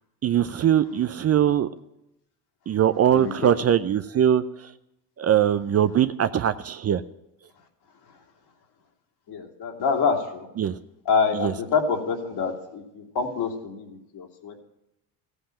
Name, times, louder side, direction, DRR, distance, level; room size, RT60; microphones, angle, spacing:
voice 1, 0.2-1.7 2.7-4.7 5.2-7.0 10.6-10.8 11.3-11.5, right 10 dB, 35° right, 12 dB, 0.6 m, -21 dB
voice 2, 3.1-3.5 9.3-10.5 11.1-14.6, left 5 dB, 55° left, 4 dB, 2.7 m, -26 dB
14.5 x 8.1 x 8.9 m, 0.87 s
hypercardioid pair, 75°, 46 cm